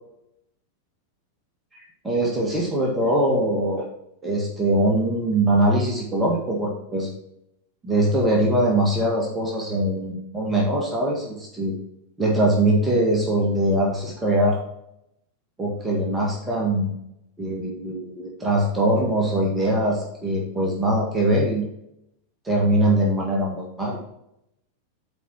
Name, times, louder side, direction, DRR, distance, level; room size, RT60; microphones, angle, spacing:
voice 1, 1.7-3.9 4.2-7.1 7.8-11.7 12.2-14.6 15.6-17.0 17.4-21.7 22.4-24.0, right 1 dB, 15° right, -2 dB, 1.7 m, -22 dB
8.3 x 4.3 x 4.5 m, 0.80 s
figure-of-eight pair, 90°, 0 cm